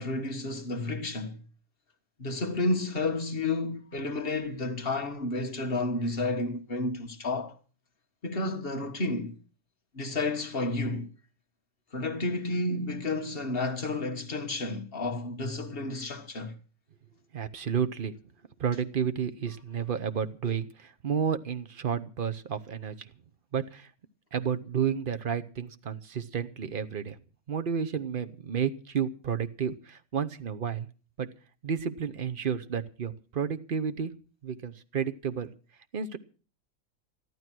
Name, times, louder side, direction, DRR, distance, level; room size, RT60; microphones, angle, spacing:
voice 1, 0.0-1.4 2.2-7.6 8.2-9.4 9.9-11.1 11.9-16.5, left 2 dB, 40° left, 1.7 m, -31 dB
voice 2, 17.3-18.1 18.6-23.1 23.5-23.9 24.3-27.2 27.5-30.9 31.2-31.3 31.6-34.1 34.4-35.5 35.9-36.2, right 7 dB, 45° right, 0.9 m, -31 dB
14.0 x 12.5 x 6.1 m
omnidirectional pair, 1.5 m